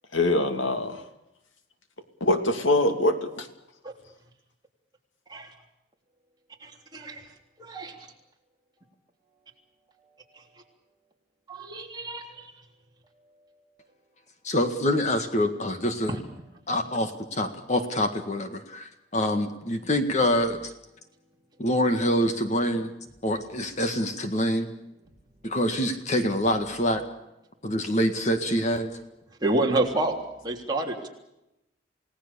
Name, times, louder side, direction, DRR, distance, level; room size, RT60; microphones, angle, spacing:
voice 1, 0.1-1.0 2.2-3.5, left 2 dB, 80° left, 7 dB, 2.7 m, -23 dB
voice 2, 6.6-7.2 7.6-8.0 11.5-12.5 16.1-16.2 29.4-30.2 30.4-31.1, right 2 dB, 20° right, 0 dB, 3.4 m, -28 dB
voice 3, 14.4-16.2 16.7-20.7 21.6-22.9 23.2-24.7 25.4-27.0 27.6-28.9, equal, 35° left, 7 dB, 1.8 m, -25 dB
29.0 x 18.5 x 7.0 m, 0.88 s
head